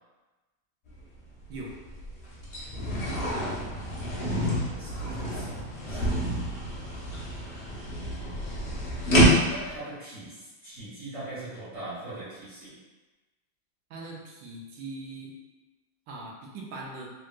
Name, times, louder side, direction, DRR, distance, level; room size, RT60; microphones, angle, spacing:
sound 1, 0.9-1.0 1.4-9.8, equal, 70° left, 0.5 m, -28 dB
voice 1, 4.8-6.9 7.8-8.4 9.4-12.8, right 2 dB, 25° right, -14 dB, 0.8 m, -42 dB
voice 2, 13.9-15.3 16.1-17.1, right 2 dB, 85° right, -2 dB, 1.3 m, -40 dB
3.4 x 2.8 x 2.3 m, 1.2 s
omnidirectional pair, 2.0 m